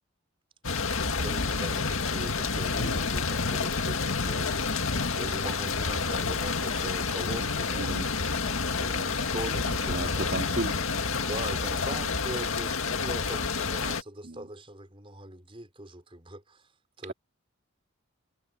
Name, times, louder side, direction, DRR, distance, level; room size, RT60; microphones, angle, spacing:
sound 1, 0.6-14.0, left 4 dB, 75° left, 1.9 m, -29 dB
voice 1, 0.8-7.9 8.7-10.3 11.2-16.7 17.0-17.1, right 1 dB, 25° right, 4.9 m, -41 dB
voice 2, 7.8-8.1 9.6-10.9 14.2-14.5 17.0-17.1, right 2 dB, 55° right, 2.5 m, -35 dB
head